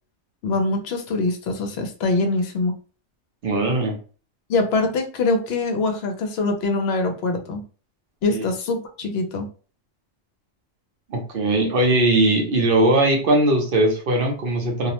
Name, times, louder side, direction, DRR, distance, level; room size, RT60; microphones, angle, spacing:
voice 1, 0.4-2.8 4.5-7.6 8.2-9.5, left 3 dB, 65° left, 4 dB, 0.7 m, -23 dB
voice 2, 3.4-4.0 8.3-8.5 11.1-14.9, right 2 dB, 55° right, 2 dB, 0.7 m, -20 dB
2.3 x 2.0 x 2.8 m, 0.39 s
omnidirectional pair, 1.3 m